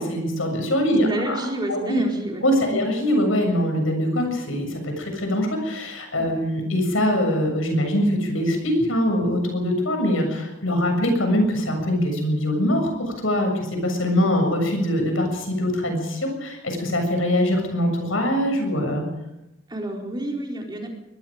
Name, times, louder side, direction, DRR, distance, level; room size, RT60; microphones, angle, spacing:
voice 1, 0.0-1.3 1.7-2.0 2.4-13.5 13.8-19.0, equal, 85° left, 4 dB, 7.3 m, -23 dB
voice 2, 1.0-2.4 2.7-2.8 19.7-20.9, right 1 dB, 20° right, 0 dB, 4.2 m, -29 dB
24.5 x 21.0 x 5.1 m, 0.89 s
head